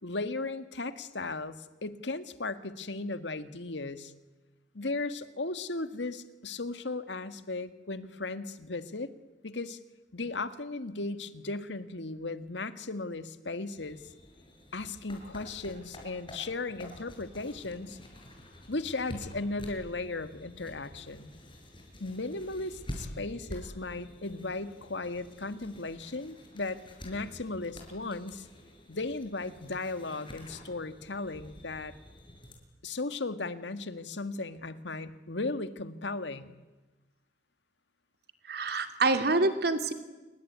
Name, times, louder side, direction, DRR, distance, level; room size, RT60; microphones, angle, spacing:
voice 1, 0.0-4.1 4.7-9.1 9.4-9.8 10.1-14.0 14.7-18.0 18.7-21.3 22.0-28.5 28.9-31.9 32.8-36.5, left 3 dB, 90° left, 11 dB, 1.8 m, -36 dB
sound 1, 13.8-32.5, equal, 30° left, 6.4 m, -48 dB
voice 2, 38.5-39.9, right 3 dB, 65° right, 8 dB, 2.6 m, -26 dB
28.5 x 22.0 x 9.5 m, 1.2 s
head